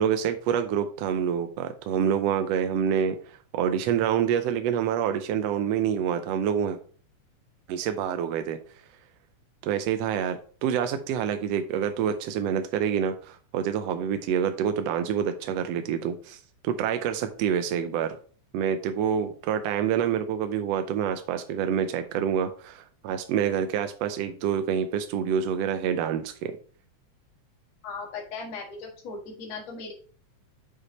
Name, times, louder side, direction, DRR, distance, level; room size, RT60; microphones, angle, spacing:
voice 1, 0.0-6.8 7.7-8.6 9.6-18.2 18.5-26.5, right 8 dB, 75° right, 8 dB, 1.6 m, -27 dB
voice 2, 27.8-29.9, left 4 dB, 65° left, -2 dB, 3.2 m, -38 dB
7.0 x 6.6 x 4.2 m, 0.44 s
omnidirectional pair, 3.3 m